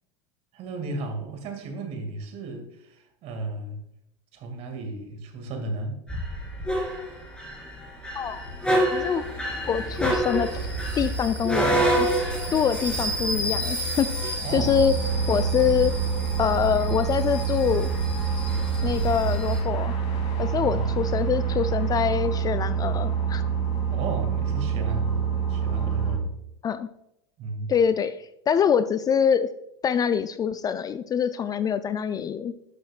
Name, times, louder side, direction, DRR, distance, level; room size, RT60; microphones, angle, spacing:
voice 1, 0.5-3.8 4.3-6.0 14.4-14.8 20.5-20.9 23.9-26.4 27.4-27.7, right 2 dB, 50° right, 5 dB, 2.1 m, -34 dB
sound 1, 6.1-19.6, right 1 dB, 5° left, 2.5 m, -28 dB
voice 2, 8.1-8.4 8.9-9.2 9.7-10.5 11.0-12.1 12.5-14.9 15.3-15.9 16.4-17.9 18.8-20.0 20.4-23.4 26.6-26.9 27.7-29.5 29.8-32.5, left 7 dB, 25° left, 12 dB, 0.4 m, -25 dB
sound 2, 14.5-26.2, right 7 dB, 45° left, 2.6 m, -27 dB
11.5 x 6.3 x 2.4 m, 0.79 s
hypercardioid pair, 95°, 15 cm